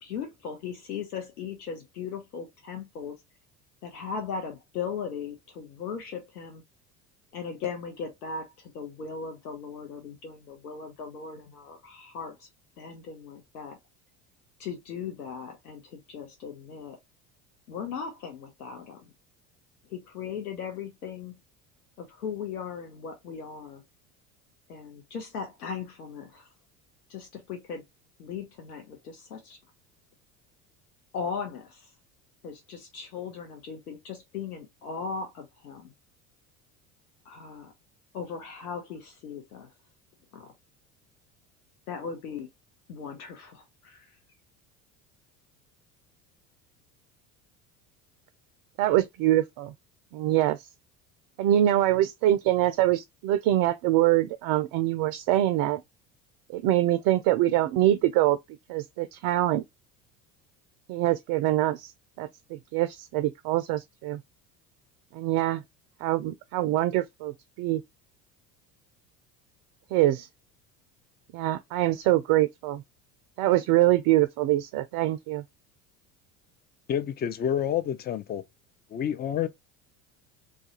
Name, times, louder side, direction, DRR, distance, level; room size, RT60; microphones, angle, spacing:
voice 1, 0.0-3.2 3.8-6.6 7.3-12.5 12.8-13.8 14.6-17.0 17.7-19.1 19.9-21.4 22.0-23.8 24.7-26.5 27.1-27.8 28.2-29.6 31.1-31.9 32.4-35.9 37.2-37.7 38.1-39.7 40.3-40.5 41.9-42.5 42.9-44.1, left 6 dB, 85° left, 0.9 m, -38 dB
voice 2, 48.8-49.7 50.1-50.6 51.4-55.8 56.5-58.4 58.7-59.6 60.9-61.9 62.2-64.2 65.1-65.6 66.0-67.8 69.9-70.3 71.3-72.8 73.4-75.4, right 14 dB, 50° right, 0.4 m, -24 dB
voice 3, 76.9-78.4 78.9-79.5, left 9 dB, 25° left, 0.4 m, -28 dB
2.4 x 2.2 x 2.8 m
hypercardioid pair, 70°, 44 cm